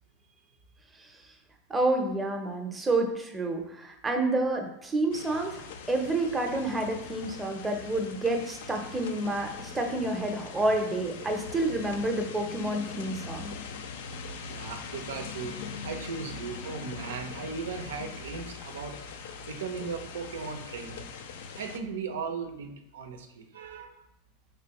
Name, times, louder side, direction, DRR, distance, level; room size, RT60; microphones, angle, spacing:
voice 1, 1.7-13.5, right 2 dB, 15° right, 3 dB, 0.6 m, -29 dB
sound 1, 5.1-21.8, left 5 dB, 75° left, 0.4 m, -42 dB
voice 2, 14.5-15.6 15.8-18.9 19.4-21.1 21.6-24.0, right 5 dB, 85° right, 5 dB, 0.5 m, -37 dB
3.3 x 3.0 x 2.9 m, 0.79 s
hypercardioid pair, 110°, 0 cm